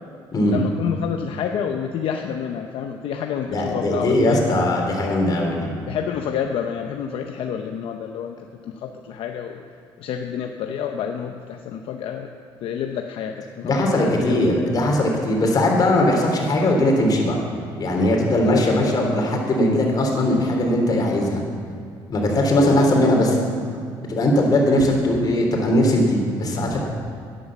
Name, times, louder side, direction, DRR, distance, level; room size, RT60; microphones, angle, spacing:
voice 1, 0.5-4.4 5.9-8.4 8.6-9.6 10.0-12.3 12.6-14.4 18.5-19.0 22.5-23.6, left 8 dB, 70° left, 4 dB, 0.7 m, -28 dB
voice 2, 3.5-5.7 13.6-17.4 17.8-21.4 22.1-23.3 24.1-26.8, left 1 dB, 40° left, 0 dB, 3.4 m, -19 dB
11.5 x 10.0 x 7.3 m, 2.3 s
cardioid pair, 105°, 10 cm